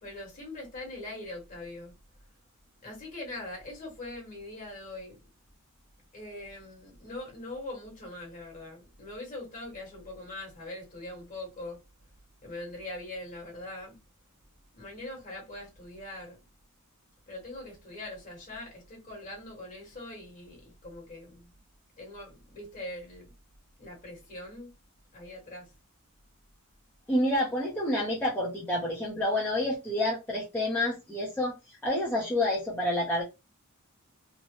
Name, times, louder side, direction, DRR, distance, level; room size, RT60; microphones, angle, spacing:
voice 1, 0.0-1.9 2.8-5.3 6.1-11.8 12.4-14.0 14.7-16.4 17.3-21.5 22.0-23.3 23.8-24.7 25.1-25.7, left 2 dB, 35° left, 1.4 m, -42 dB
voice 2, 27.1-33.2, left 1 dB, 10° left, 0.7 m, -28 dB
3.2 x 2.1 x 2.8 m
head